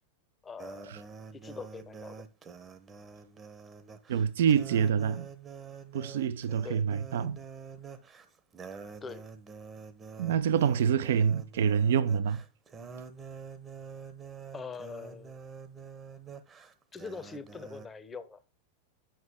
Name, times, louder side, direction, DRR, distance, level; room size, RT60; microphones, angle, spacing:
voice 1, 0.4-1.0 1.3-2.2 6.6-6.8 9.0-9.2 14.5-15.4 16.9-18.4, left 5 dB, 15° left, 0.9 m, -43 dB
sound 1, 0.6-17.9, right 6 dB, 20° right, 1.0 m, -47 dB
voice 2, 4.1-5.3 5.9-7.4 10.2-12.4, right 7 dB, 60° right, 0.7 m, -26 dB
9.0 x 6.1 x 3.7 m
figure-of-eight pair, 90°, 0 cm